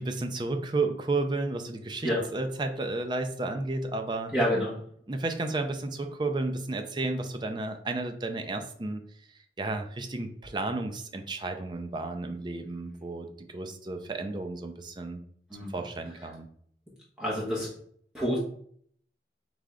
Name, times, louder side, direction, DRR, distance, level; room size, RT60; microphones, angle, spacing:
voice 1, 0.0-4.3 5.1-9.0 9.6-15.2 15.7-16.5, right 2 dB, 25° right, 6 dB, 0.4 m, -32 dB
voice 2, 4.3-4.8 15.5-15.8 17.2-17.7 18.1-18.4, equal, 5° right, -7 dB, 1.2 m, -28 dB
3.7 x 3.3 x 3.7 m, 0.62 s
head